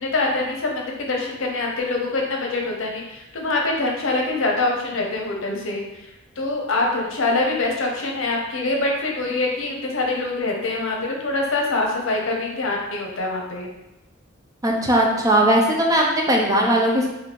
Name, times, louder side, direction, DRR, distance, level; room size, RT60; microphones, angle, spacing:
voice 1, 0.0-5.8 6.4-13.7, left 2 dB, 70° left, 0 dB, 0.7 m, -24 dB
voice 2, 14.6-17.1, right 1 dB, 15° right, 0 dB, 0.5 m, -18 dB
3.0 x 2.7 x 4.1 m, 0.95 s
head